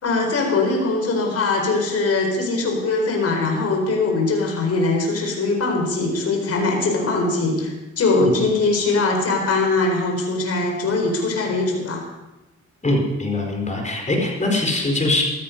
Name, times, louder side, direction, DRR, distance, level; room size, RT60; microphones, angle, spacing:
voice 1, 0.0-12.0, left 3 dB, 50° left, 2 dB, 4.6 m, -21 dB
voice 2, 12.8-15.2, left 2 dB, 25° left, 1 dB, 4.6 m, -22 dB
15.5 x 13.5 x 5.4 m, 1.0 s
cardioid pair, 90°, 30 cm